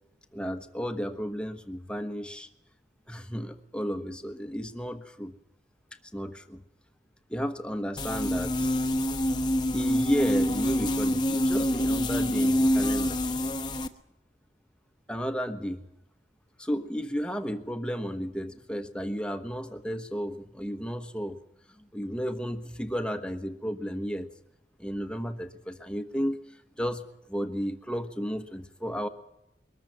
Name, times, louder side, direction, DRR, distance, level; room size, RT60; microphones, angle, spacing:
voice 1, 0.3-2.5 3.1-5.3 6.1-6.6 7.3-8.7 9.7-13.2 15.1-15.8 16.6-21.4 21.8-24.3 24.8-26.4 26.8-29.1, equal, 5° left, 7 dB, 1.2 m, -33 dB
sound 1, 8.0-13.9, equal, 25° left, 1.1 m, -26 dB
22.5 x 14.0 x 9.5 m, 0.84 s
head